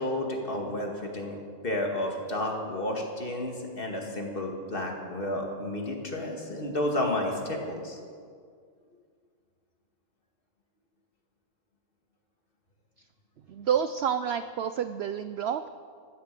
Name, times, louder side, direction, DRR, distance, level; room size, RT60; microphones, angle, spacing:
voice 1, 0.0-1.4 1.6-8.0, left 1 dB, 40° left, 1 dB, 2.3 m, -31 dB
voice 2, 13.5-15.7, right 8 dB, 65° right, 11 dB, 0.6 m, -29 dB
15.5 x 12.5 x 6.8 m, 2.1 s
omnidirectional pair, 1.5 m